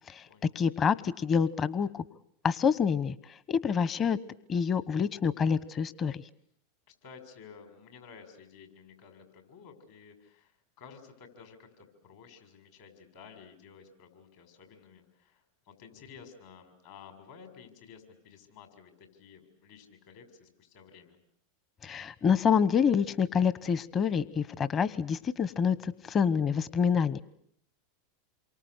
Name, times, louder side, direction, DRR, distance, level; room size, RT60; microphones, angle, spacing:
voice 1, 0.5-2.0 2.4-3.1 3.5-4.2 4.5-6.2 21.8-27.2, left 6 dB, 30° left, 17 dB, 1.1 m, -27 dB
voice 2, 7.0-21.2, left 6 dB, 65° left, 6 dB, 6.7 m, -53 dB
28.0 x 23.5 x 8.2 m, 0.67 s
hypercardioid pair, 95°, 0 cm